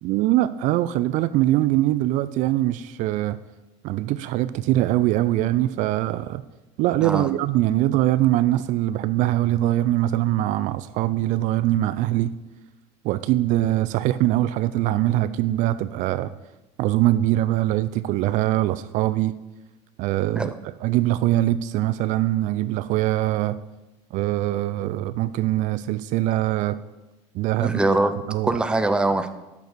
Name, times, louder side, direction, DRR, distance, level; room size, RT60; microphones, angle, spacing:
voice 1, 0.0-3.4 3.8-6.4 6.8-12.3 13.0-16.3 16.8-19.3 20.0-20.5 20.8-23.6 24.1-26.7 27.3-27.8 28.3-28.6, right 15 dB, 55° right, 14 dB, 0.4 m, -22 dB
voice 2, 27.6-28.1 28.4-29.3, right 2 dB, 5° right, 9 dB, 0.6 m, -22 dB
8.2 x 6.7 x 6.1 m, 1.0 s
supercardioid pair, 125°, 15 cm